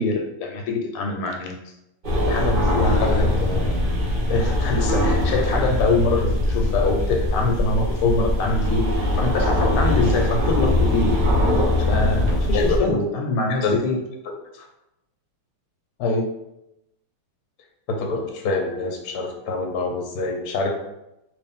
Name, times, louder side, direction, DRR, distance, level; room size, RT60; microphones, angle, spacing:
voice 1, 0.0-1.5 2.3-3.8 4.3-11.1 11.8-14.0 16.0-16.2, left 3 dB, 85° left, 3 dB, 1.5 m, -24 dB
sound 1, 2.0-12.8, left 1 dB, 70° right, 0.4 m, -21 dB
voice 2, 12.5-13.0 13.6-13.8 17.9-20.7, left 3 dB, 60° left, 1 dB, 1.1 m, -25 dB
3.2 x 3.1 x 3.5 m, 0.87 s
omnidirectional pair, 2.4 m